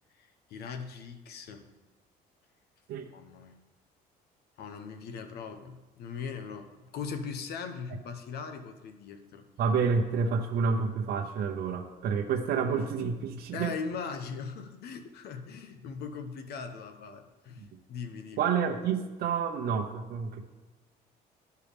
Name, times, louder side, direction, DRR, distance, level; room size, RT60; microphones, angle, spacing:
voice 1, 0.2-1.7 3.1-3.6 4.6-9.5 13.5-18.5, left 5 dB, 70° left, 7 dB, 0.9 m, -40 dB
voice 2, 9.6-13.7 18.4-20.4, right 6 dB, 70° right, 2 dB, 0.8 m, -29 dB
13.0 x 4.6 x 3.5 m, 1.2 s
cardioid pair, 110°, 17 cm